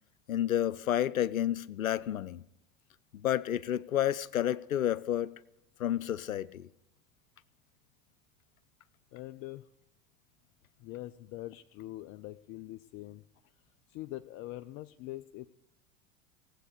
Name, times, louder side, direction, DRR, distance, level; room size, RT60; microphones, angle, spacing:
voice 1, 0.3-2.4 3.1-5.3 5.8-6.7, left 11 dB, 80° left, 0.6 m, -30 dB
voice 2, 9.1-9.7 10.8-13.2 13.9-15.5, left 16 dB, 35° left, 0.4 m, -43 dB
18.0 x 8.3 x 6.6 m
figure-of-eight pair, 80°, 40 cm